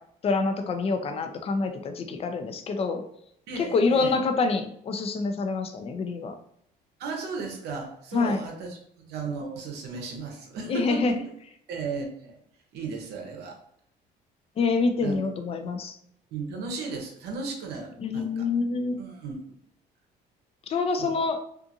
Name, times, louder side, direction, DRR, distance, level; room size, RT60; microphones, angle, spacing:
voice 1, 0.2-3.0 3.6-6.3 8.1-8.4 10.7-11.1 14.6-16.0 18.0-19.0 20.7-21.4, left 4 dB, 35° left, 6 dB, 0.4 m, -26 dB
voice 2, 3.5-4.2 7.0-11.2 11.7-12.4 12.7-13.6 15.0-15.2 16.3-18.5 19.0-19.4 21.0-21.2, right 4 dB, 75° right, 1 dB, 0.7 m, -35 dB
2.5 x 2.4 x 2.7 m, 0.71 s
cardioid pair, 110°, 17 cm